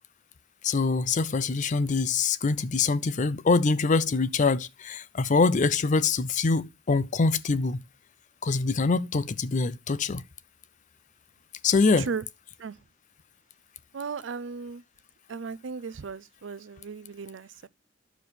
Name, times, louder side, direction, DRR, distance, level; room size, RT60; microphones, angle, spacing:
voice 1, 0.6-7.8 8.4-10.2 11.6-12.1, left 4 dB, 40° left, 0.5 m, -24 dB
voice 2, 13.9-14.8 15.3-17.7, right 5 dB, 70° right, 0.5 m, -36 dB
10.0 x 7.0 x 4.2 m
head